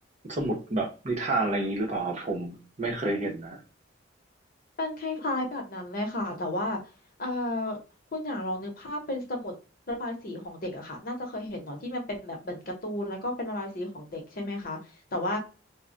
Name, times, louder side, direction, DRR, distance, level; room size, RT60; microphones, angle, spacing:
voice 1, 0.2-3.6, right 2 dB, 40° right, 0.7 m, -29 dB
voice 2, 4.8-6.8 7.2-7.8 8.1-9.5 9.9-14.8 15.1-15.4, left 1 dB, 50° left, 0.8 m, -33 dB
2.2 x 2.1 x 3.7 m
head